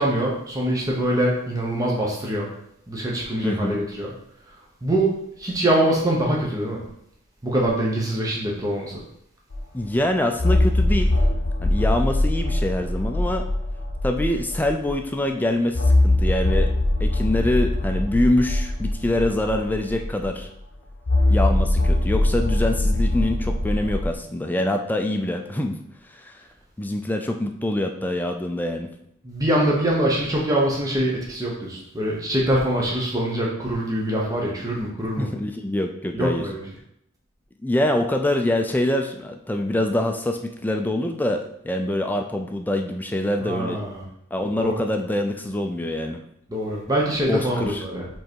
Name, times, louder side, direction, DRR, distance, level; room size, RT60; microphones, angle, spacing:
voice 1, 0.0-2.5 2.9-4.1 4.8-5.1 5.4-6.8 7.4-9.0 29.2-35.3 36.1-36.6 43.4-44.0 44.5-44.7 46.5-48.0, right 1 dB, 20° right, -3 dB, 1.0 m, -24 dB
voice 2, 3.4-3.8 9.7-11.1 11.6-13.4 14.0-16.7 17.0-20.5 21.3-25.8 26.1-26.4 26.8-28.9 35.2-36.5 37.6-43.8 44.3-46.2 47.3-47.9, left 1 dB, 10° left, 4 dB, 0.4 m, -25 dB
sound 1, 9.5-9.6 10.4-14.9 15.7-20.4 21.1-24.1, left 1 dB, 65° left, 0.8 m, -22 dB
5.4 x 3.9 x 4.5 m, 0.74 s
head